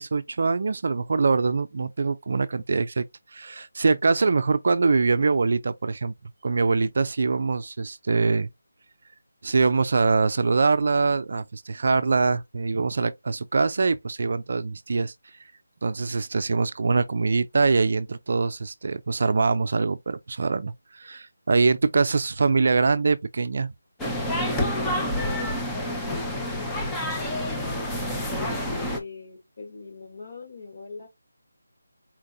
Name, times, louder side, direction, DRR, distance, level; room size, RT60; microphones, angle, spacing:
voice 1, 0.0-6.1 6.4-8.5 9.4-15.4 15.8-23.7, right 4 dB, 50° right, 0.4 m, -23 dB
sound 1, 24.0-29.0, left 1 dB, 5° left, 0.6 m, -28 dB
voice 2, 25.1-27.8 28.6-31.1, left 4 dB, 45° left, 1.7 m, -41 dB
4.4 x 3.5 x 2.6 m
figure-of-eight pair, 170°, 0 cm